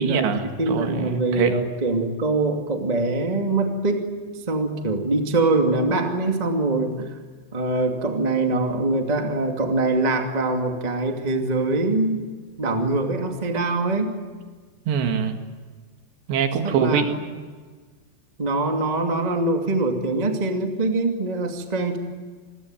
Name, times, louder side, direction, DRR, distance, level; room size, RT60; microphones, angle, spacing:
voice 1, 0.0-1.6 14.9-15.4 16.3-17.2, right 7 dB, 75° right, 6 dB, 4.1 m, -24 dB
voice 2, 0.6-4.0 4.5-7.1 7.5-12.2 12.6-14.2 16.6-17.3 18.4-22.0, right 2 dB, 15° right, 4 dB, 1.4 m, -23 dB
28.0 x 22.0 x 9.1 m, 1.5 s
omnidirectional pair, 5.0 m